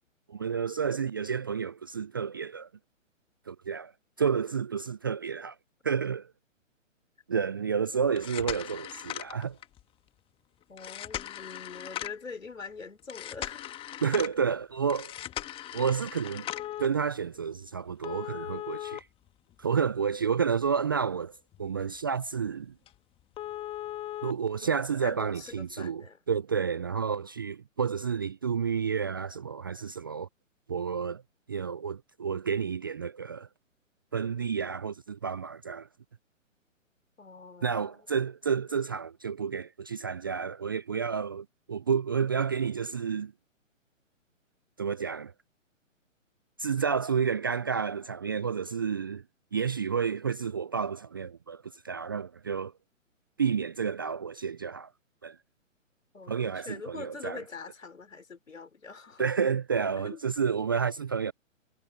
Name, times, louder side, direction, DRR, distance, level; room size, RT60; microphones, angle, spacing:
voice 1, 0.3-2.7 3.5-3.9 4.2-5.5 5.8-6.3 7.3-9.6 14.0-15.1 15.7-16.5 16.8-19.0 19.6-21.3 21.6-22.7 24.2-30.3 30.7-31.2 31.5-33.5 34.1-35.9 37.6-43.3 44.8-45.3 46.6-49.2 49.5-52.7 53.4-54.9 55.2-55.4 56.3-57.4 59.2-61.3, right 6 dB, 20° right, 0.4 m, -30 dB
sound 1, 8.0-9.8 10.8-12.3 13.1-14.3 14.9-16.9 18.0-19.9 20.3-20.4 21.0-21.1 21.5-21.7 21.9-22.0 22.4-22.5 22.9-23.0 23.3-24.3 25.4-25.5, left 13 dB, 15° left, 1.6 m, -38 dB
voice 2, 10.7-13.7 24.6-26.2 37.2-38.1 56.1-59.3 60.0-60.2 60.7-60.9, left 5 dB, 75° left, 5.8 m, -44 dB
figure-of-eight pair, 130°, 39 cm